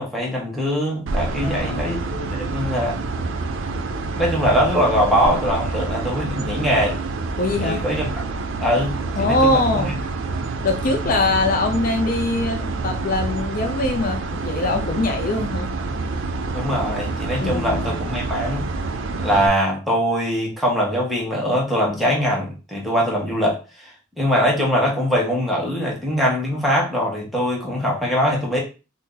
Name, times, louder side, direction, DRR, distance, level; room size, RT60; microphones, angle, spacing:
voice 1, 0.0-3.0 4.2-7.0 7.6-8.1 8.6-9.9 11.0-11.3 16.5-18.7 19.2-23.9 24.2-28.6, equal, ahead, 1.0 m, -22 dB
sound 1, 1.1-19.5, right 3 dB, 90° right, 0.4 m, -27 dB
voice 2, 1.4-2.0 7.4-7.8 9.2-10.0 10.6-15.7 17.4-18.0, left 2 dB, 45° left, 0.5 m, -22 dB
2.7 x 2.5 x 3.7 m
head